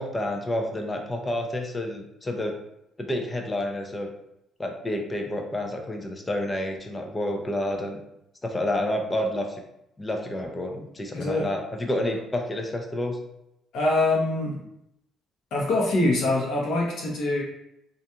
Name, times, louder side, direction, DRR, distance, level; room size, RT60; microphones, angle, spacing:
voice 1, 0.0-2.5 3.0-4.1 4.6-8.0 8.4-9.6 10.0-13.2, left 1 dB, 15° left, 3 dB, 0.3 m, -29 dB
voice 2, 11.1-11.5 13.7-14.6 15.5-17.4, left 2 dB, 55° left, -3 dB, 0.7 m, -24 dB
2.4 x 2.2 x 2.7 m, 0.81 s
cardioid pair, 170°, 0 cm